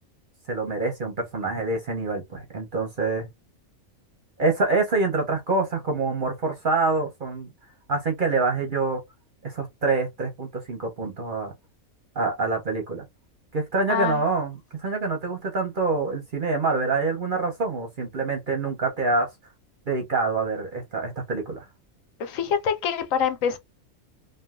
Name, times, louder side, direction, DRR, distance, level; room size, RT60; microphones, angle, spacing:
voice 1, 0.5-3.3 4.4-7.5 7.9-9.0 9.4-11.5 12.2-13.1 13.5-19.3 19.9-21.6, right 3 dB, 50° right, 0.7 m, -26 dB
voice 2, 22.2-23.6, left 7 dB, 75° left, 1.0 m, -25 dB
3.0 x 2.3 x 2.3 m
omnidirectional pair, 1.4 m